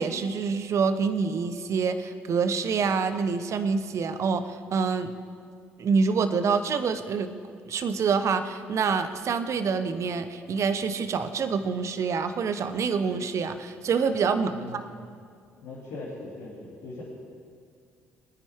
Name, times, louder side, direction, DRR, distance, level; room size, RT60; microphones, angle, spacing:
voice 1, 0.0-5.1 5.8-7.3 7.7-14.9, right 5 dB, 55° right, 10 dB, 1.1 m, -26 dB
voice 2, 14.4-15.1 15.6-17.0, left 2 dB, 70° left, -7 dB, 2.9 m, -40 dB
23.5 x 9.8 x 3.7 m, 2.3 s
hypercardioid pair, 55°, 6 cm